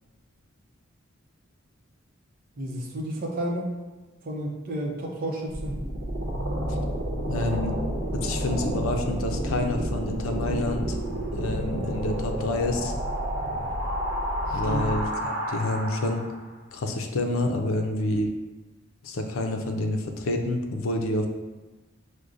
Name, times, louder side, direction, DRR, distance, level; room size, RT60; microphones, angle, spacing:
voice 1, 2.6-3.7 4.2-5.8 14.5-14.8, right 1 dB, 45° right, -2 dB, 0.6 m, -31 dB
sound 1, 5.5-16.4, equal, 75° right, 0.9 m, -30 dB
voice 2, 7.3-7.7 8.1-11.0 11.3-12.9 14.5-16.2 16.7-18.3 19.0-21.3, left 2 dB, 90° left, 4 dB, 0.5 m, -28 dB
6.2 x 2.1 x 2.5 m, 1.2 s
head